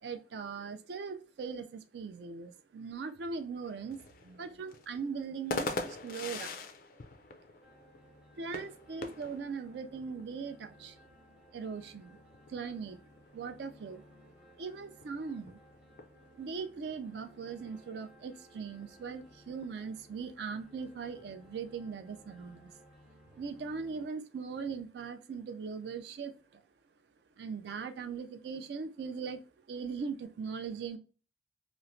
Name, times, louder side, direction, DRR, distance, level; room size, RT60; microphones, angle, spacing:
voice 1, 0.0-6.6 8.3-11.0 11.5-12.2 12.5-13.0 13.3-14.0 14.6-15.6 16.3-22.7 23.3-26.6 27.4-29.4 29.7-31.0, right 5 dB, 65° right, 7 dB, 0.4 m, -40 dB
sound 1, 3.6-22.5, left 3 dB, 50° left, 0.3 m, -46 dB
sound 2, 7.6-24.1, equal, 5° right, 0.5 m, -60 dB
2.9 x 2.1 x 2.5 m, 0.37 s
head